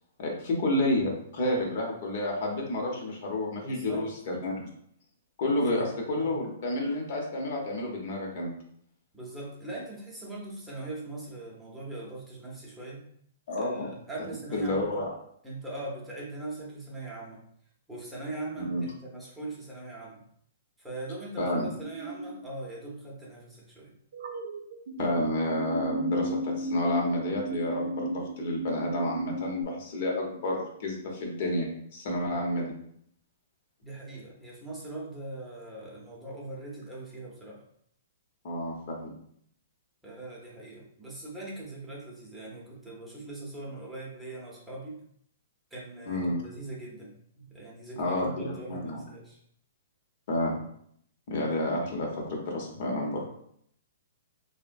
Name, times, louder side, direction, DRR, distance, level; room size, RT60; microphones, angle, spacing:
voice 1, 0.2-4.6 5.4-8.5 13.5-13.9 14.5-15.1 18.6-18.8 21.4-21.7 25.0-32.7 38.4-39.1 46.1-46.4 48.0-49.0 50.3-50.6 51.3-53.3, left 1 dB, 55° left, 0 dB, 0.8 m, -30 dB
voice 2, 3.6-4.1 5.5-5.9 6.2-6.4 9.1-13.1 13.6-15.0 15.4-17.4 17.9-20.2 20.8-23.9 33.8-37.6 40.0-45.0 45.7-49.4, right 2 dB, 5° right, -5 dB, 0.7 m, -41 dB
sound 1, 21.8-22.4 24.1-25.1 25.5-29.6, equal, 70° right, 0.5 m, -33 dB
3.2 x 2.1 x 2.5 m, 0.67 s
hypercardioid pair, 140°, 0 cm